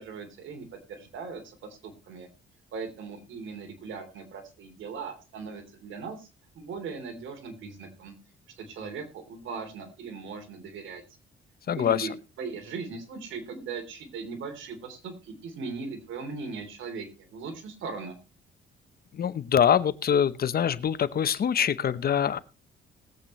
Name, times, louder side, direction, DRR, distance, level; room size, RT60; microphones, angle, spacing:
voice 1, 0.0-2.3 2.7-6.3 6.5-8.1 8.6-11.0 11.7-12.1 12.4-18.1, right 4 dB, 75° right, 3.4 m, -39 dB
voice 2, 11.7-12.1 19.1-22.4, left 8 dB, 50° left, 0.8 m, -24 dB
20.0 x 8.3 x 3.2 m
cardioid pair, 90°, 20 cm